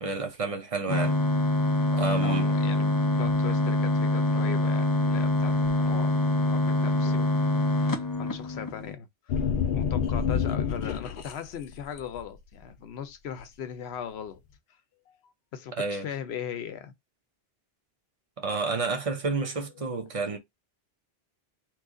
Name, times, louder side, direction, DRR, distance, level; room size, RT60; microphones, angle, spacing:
voice 1, 0.0-1.2 1.9-2.5 15.7-16.1 18.4-20.4, right 4 dB, 40° right, 0.7 m, -30 dB
sound 1, 0.9-8.9, left 1 dB, 35° left, 0.3 m, -25 dB
voice 2, 2.2-14.4 15.1-16.9 19.8-19.9, left 8 dB, 85° left, 0.9 m, -39 dB
sound 2, 9.3-11.3 11.7-12.2, left 7 dB, 60° left, 0.7 m, -27 dB
3.1 x 2.4 x 3.6 m
omnidirectional pair, 1.1 m